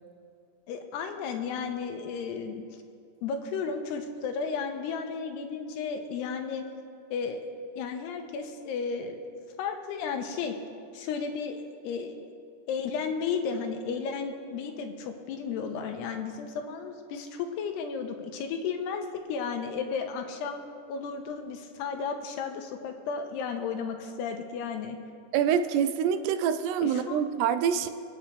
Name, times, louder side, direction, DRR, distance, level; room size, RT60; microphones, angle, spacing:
voice 1, 0.7-2.6 3.2-6.6 7.1-7.5 7.8-9.2 9.6-10.6 10.9-12.3 12.7-20.6 20.9-25.0 26.8-27.2, left 5 dB, 85° left, 5 dB, 2.9 m, -33 dB
voice 2, 25.3-27.9, right 8 dB, 85° right, 10 dB, 2.8 m, -26 dB
27.0 x 9.0 x 3.3 m, 2.5 s
omnidirectional pair, 4.8 m